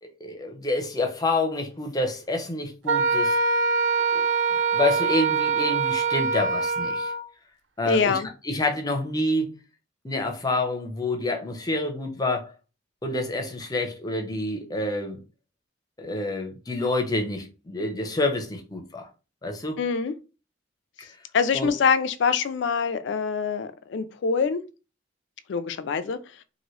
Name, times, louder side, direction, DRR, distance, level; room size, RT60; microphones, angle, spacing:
voice 1, 0.0-3.4 4.1-4.3 4.7-7.1 7.8-9.5 10.0-12.5 13.0-15.2 16.0-19.1 19.4-19.8 21.0-21.1 21.5-21.7, left 2 dB, 20° left, 0.6 m, -28 dB
Wind instrument woodwind instrument, 2.9-7.2, right 4 dB, 65° right, 0.4 m, -24 dB
voice 2, 7.9-8.3 19.8-20.1 21.3-24.6 25.5-26.2, left 5 dB, 65° left, 0.3 m, -24 dB
2.9 x 2.6 x 3.0 m
head